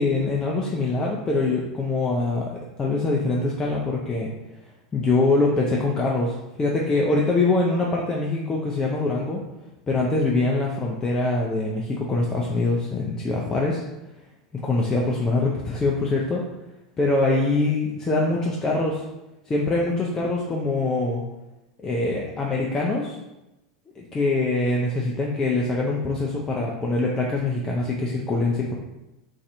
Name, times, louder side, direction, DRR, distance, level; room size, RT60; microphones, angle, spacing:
voice 1, 0.0-2.5 2.8-4.3 4.9-9.4 9.9-13.8 14.5-16.4 17.0-19.0 19.5-21.2 21.8-23.2 24.0-28.7, left 2 dB, 15° left, -2 dB, 0.4 m, -24 dB
3.1 x 2.6 x 2.6 m, 0.97 s
figure-of-eight pair, 85°, 3 cm